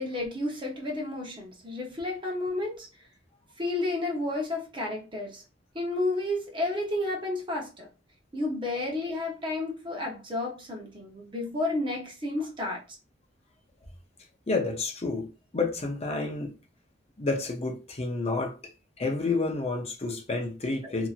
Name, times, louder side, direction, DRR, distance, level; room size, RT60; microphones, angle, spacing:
voice 1, 0.0-2.9 3.6-5.4 5.7-7.9 8.3-12.8 20.8-20.9, left 2 dB, 25° right, 0.8 m, -31 dB
voice 2, 14.5-15.3 15.5-16.6 17.2-18.5 19.0-21.1, left 3 dB, 35° left, 0.6 m, -29 dB
2.8 x 2.6 x 2.4 m
head